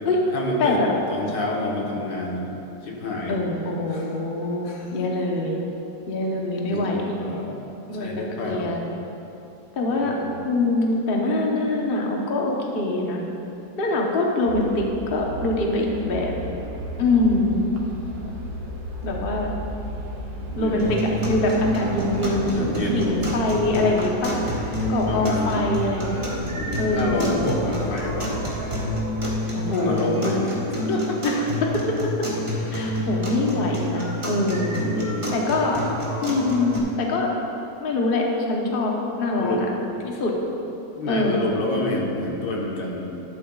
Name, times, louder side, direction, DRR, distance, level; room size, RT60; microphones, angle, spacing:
voice 1, 0.3-2.5 2.8-3.4 3.9-4.1 4.6-5.0 6.7-7.5 7.9-8.8 9.9-10.3 20.6-20.9 22.5-23.2 25.1-25.7 26.5-28.3 29.4-31.2 34.9-35.8 39.4-39.7 41.0-43.2, left 2 dB, 75° left, -2 dB, 1.9 m, -29 dB
voice 2, 3.3-5.6 6.1-7.2 7.9-8.8 9.8-10.1 10.5-13.2 13.8-16.3 17.0-17.6 19.0-19.5 20.6-24.3 24.9-26.2 26.8-27.5 29.5-30.5 31.2-31.8 32.7-34.9 35.3-35.8 36.2-37.3 37.8-39.7 40.0-40.3 41.1-41.4, left 2 dB, 40° left, -1 dB, 1.0 m, -24 dB
sound 1, 14.5-29.3, right 1 dB, 80° right, 1.8 m, -33 dB
sound 2, 20.8-36.8, equal, 20° right, 1.5 m, -28 dB
12.5 x 11.5 x 2.4 m, 2.9 s
omnidirectional pair, 1.9 m